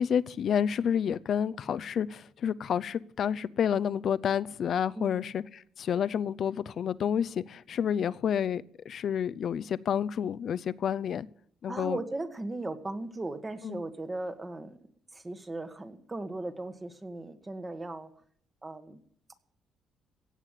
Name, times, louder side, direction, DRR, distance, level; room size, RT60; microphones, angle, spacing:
voice 1, 0.0-11.3 11.6-12.0 13.6-13.8, left 8 dB, 60° left, 0.6 m, -29 dB
voice 2, 4.9-5.3 11.7-14.8 15.1-18.1 18.6-19.0, right 2 dB, 20° right, 1.6 m, -37 dB
16.5 x 8.3 x 7.5 m
cardioid pair, 90°, 0 cm